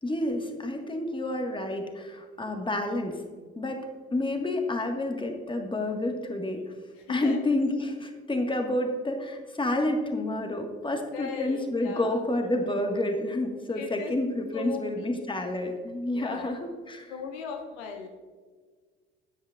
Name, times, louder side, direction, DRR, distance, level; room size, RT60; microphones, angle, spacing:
voice 1, 0.0-3.2 3.5-6.6 7.1-17.1, left 1 dB, 15° left, 3 dB, 1.7 m, -29 dB
voice 2, 7.1-7.4 11.1-12.3 13.8-14.1 14.5-15.4 16.1-16.5 17.1-18.1, left 6 dB, 70° left, 3 dB, 1.2 m, -38 dB
13.5 x 9.2 x 2.5 m, 1.6 s
figure-of-eight pair, 55°, 33 cm